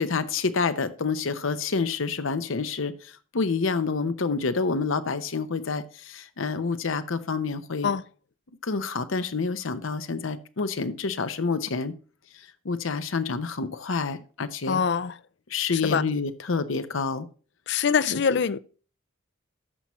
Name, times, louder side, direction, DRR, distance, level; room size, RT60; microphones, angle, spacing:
voice 1, 0.0-2.9 3.3-7.9 8.6-11.9 12.6-14.8 15.5-17.3 18.1-18.2, left 4 dB, 75° left, 0.8 m, -28 dB
voice 2, 14.7-15.2 15.7-16.0 17.7-18.6, left 6 dB, 60° left, 0.4 m, -24 dB
13.5 x 5.7 x 3.0 m
head